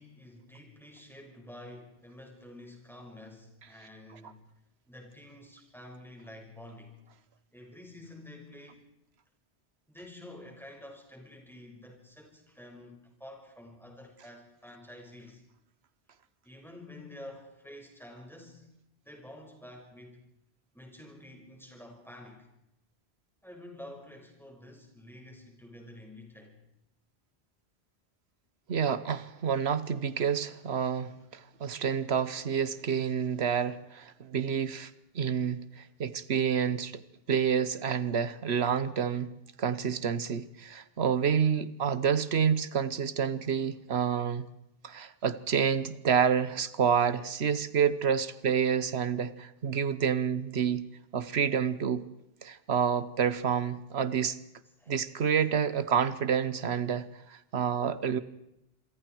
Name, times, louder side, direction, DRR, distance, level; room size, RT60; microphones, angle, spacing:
voice 1, 0.0-4.4 4.9-7.0 7.5-8.8 9.9-15.4 16.4-18.7 19.1-20.2 20.7-22.5 23.4-26.6 35.8-35.9 54.8-55.1, left 1 dB, ahead, 1 dB, 5.6 m, -49 dB
voice 2, 28.7-34.9 35.1-37.0 37.3-39.3 39.6-44.5 44.8-50.9 51.1-52.1 52.4-54.4 54.9-58.2, right 7 dB, 85° right, 15 dB, 1.3 m, -28 dB
27.0 x 23.5 x 4.6 m, 0.86 s
omnidirectional pair, 1.0 m